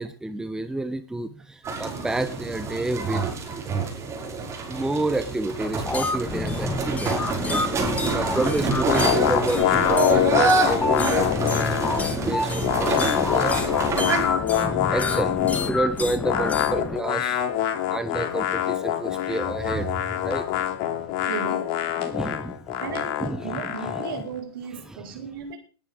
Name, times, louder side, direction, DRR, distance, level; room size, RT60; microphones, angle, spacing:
voice 1, 0.0-3.3 4.7-11.8 12.3-17.5 17.9-21.2 22.0-22.8 23.2-24.0 24.9-25.2, right 2 dB, 5° right, 1.1 m, -30 dB
sound 1, 1.6-14.2, right 4 dB, 20° right, 5.7 m, -27 dB
sound 2, 5.8-17.0, left 3 dB, 10° left, 1.9 m, -29 dB
sound 3, 8.9-12.2 12.4-15.7 16.2-24.2, left 11 dB, 40° left, 3.0 m, -25 dB
voice 2, 21.3-21.8 22.8-25.6, right 7 dB, 60° right, 4.9 m, -35 dB
20.0 x 10.0 x 3.7 m
figure-of-eight pair, 110°, 13 cm